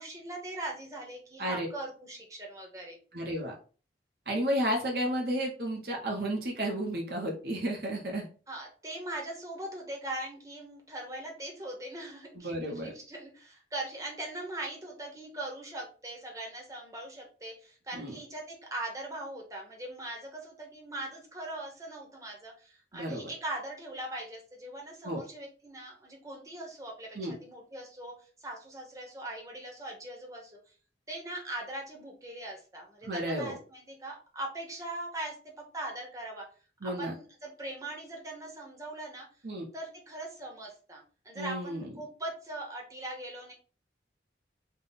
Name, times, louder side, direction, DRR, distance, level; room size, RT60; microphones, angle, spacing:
voice 1, 0.0-3.0 8.5-30.7 31.1-35.3 35.7-36.4 36.8-39.3 39.7-43.5, right 1 dB, 20° right, -1 dB, 0.9 m, -41 dB
voice 2, 3.1-3.5 4.3-8.3 12.4-12.9 17.9-18.2 22.9-23.3 25.0-25.2 27.1-27.3 33.0-33.6 36.8-37.1 39.4-39.6 41.3-41.9, right 1 dB, 55° right, 0 dB, 0.8 m, -32 dB
3.6 x 2.2 x 4.0 m, 0.38 s
head